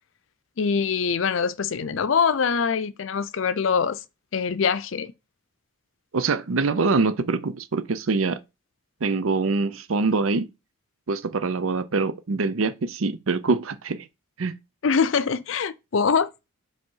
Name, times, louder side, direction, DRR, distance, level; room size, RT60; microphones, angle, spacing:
voice 1, 0.6-4.0 4.3-5.1 14.8-16.3, left 6 dB, 70° left, 0.5 m, -23 dB
voice 2, 6.1-8.4 9.0-10.5 11.1-14.1 14.4-14.5, right 4 dB, 80° right, 0.6 m, -24 dB
5.2 x 3.5 x 5.5 m
head